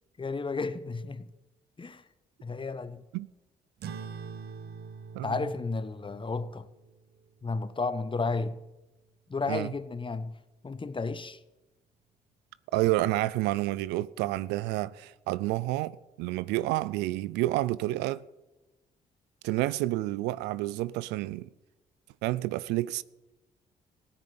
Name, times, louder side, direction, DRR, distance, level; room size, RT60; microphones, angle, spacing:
voice 1, 0.2-1.3 1.8-2.0 2.4-3.0 5.2-6.7 7.4-8.6 9.3-10.4 10.6-11.4, left 4 dB, 30° left, 1.2 m, -32 dB
sound 1, 3.8-8.7, right 6 dB, 70° right, 1.2 m, -45 dB
voice 2, 5.2-5.5 9.5-9.7 12.7-18.2 19.4-21.5 22.2-23.0, right 17 dB, 90° right, 0.5 m, -29 dB
15.0 x 9.9 x 8.7 m
supercardioid pair, 55°, 17 cm